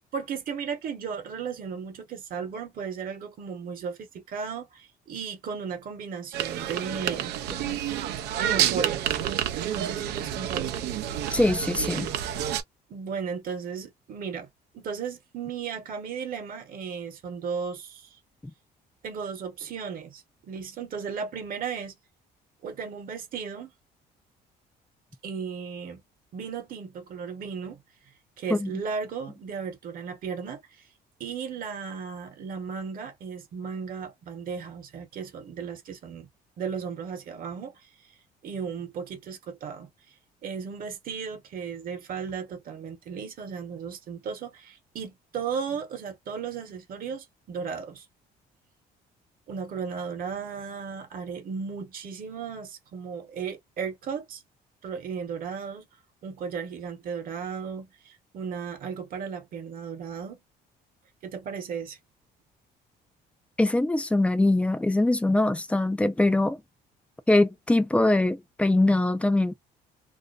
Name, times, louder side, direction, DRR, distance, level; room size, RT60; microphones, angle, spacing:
voice 1, 0.1-7.3 8.3-9.1 9.7-10.9 12.9-14.5 14.7-18.1 19.0-22.0 22.6-23.7 25.2-26.0 26.3-27.8 28.4-30.6 31.2-36.3 36.6-37.7 38.4-39.9 40.4-48.1 49.5-54.4 54.8-55.9 56.2-60.4 61.2-62.0, right 6 dB, 55° right, 1.0 m, -35 dB
sound 1, 6.3-12.6, right 11 dB, 75° right, 0.5 m, -29 dB
voice 2, 11.3-12.1 18.4-18.5 28.5-28.7 63.6-66.6 67.3-69.5, left 2 dB, 5° left, 0.3 m, -23 dB
2.5 x 2.1 x 2.3 m
cardioid pair, 110°, 17 cm